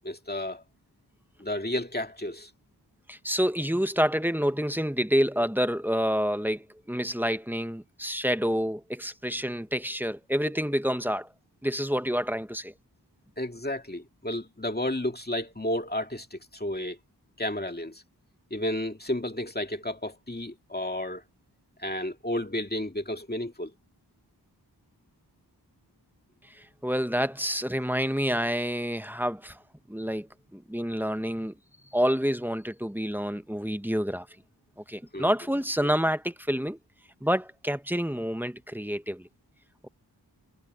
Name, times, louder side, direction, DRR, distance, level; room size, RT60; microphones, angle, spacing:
voice 1, 0.0-0.6 1.4-2.5 13.4-17.0 17.4-18.0 18.5-21.2 21.8-23.7 35.1-35.3 35.8-35.9, left 1 dB, 25° left, 2.2 m, -32 dB
voice 2, 3.1-11.3 11.6-12.7 26.4-29.6 29.9-31.5 31.9-34.3 34.9-36.8 37.2-39.3, equal, 5° right, 1.0 m, -28 dB
wide cardioid pair, 50°, 40 cm